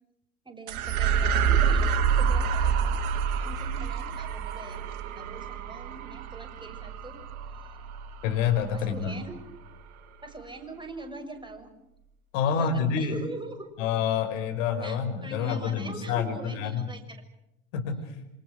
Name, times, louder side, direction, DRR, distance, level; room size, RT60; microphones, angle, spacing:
voice 1, 0.4-3.1 3.3-4.8 5.1-7.2 7.5-7.8 8.7-9.4 10.2-11.7 12.4-13.7 14.8-17.2, right 2 dB, 10° right, 5 dB, 6.5 m, -42 dB
sound 1, 0.7-9.3, right 6 dB, 60° right, 2.7 m, -28 dB
voice 2, 8.2-9.2 12.3-13.2 13.8-16.9 17.7-18.1, left 7 dB, 65° left, 6 dB, 5.5 m, -28 dB
27.0 x 25.5 x 6.4 m, 0.87 s
figure-of-eight pair, 75°, 43 cm